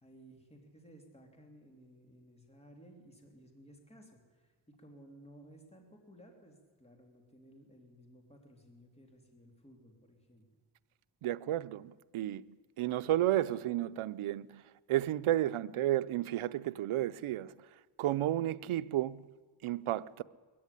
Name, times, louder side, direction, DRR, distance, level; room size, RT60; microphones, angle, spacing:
voice 1, 0.0-10.4, right 1 dB, 10° left, 3.0 m, -57 dB
voice 2, 11.2-14.6 14.9-17.5 18.0-19.3 19.6-20.2, right 13 dB, 85° right, 0.7 m, -32 dB
21.5 x 15.0 x 10.0 m
wide cardioid pair, 130°, 49 cm